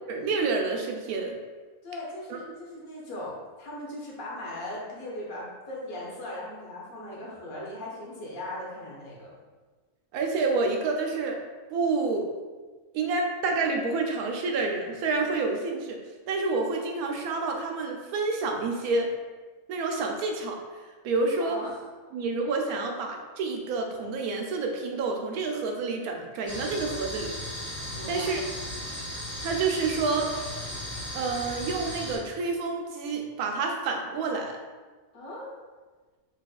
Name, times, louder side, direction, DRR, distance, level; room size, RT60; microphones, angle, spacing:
voice 1, 0.1-1.4 2.3-2.4 10.1-11.4 11.7-12.3 12.9-16.0 16.3-19.1 19.7-21.6 22.1-27.3 28.1-28.4 29.4-30.3 31.1-34.6, right 3 dB, 90° right, 2 dB, 1.1 m, -28 dB
voice 2, 1.8-9.4 21.4-21.8 27.9-28.5 35.1-35.5, left 1 dB, 75° left, -5 dB, 1.4 m, -39 dB
sound 1, 26.5-32.2, left 1 dB, 30° left, 0.9 m, -36 dB
4.0 x 3.0 x 2.3 m, 1.4 s
omnidirectional pair, 1.5 m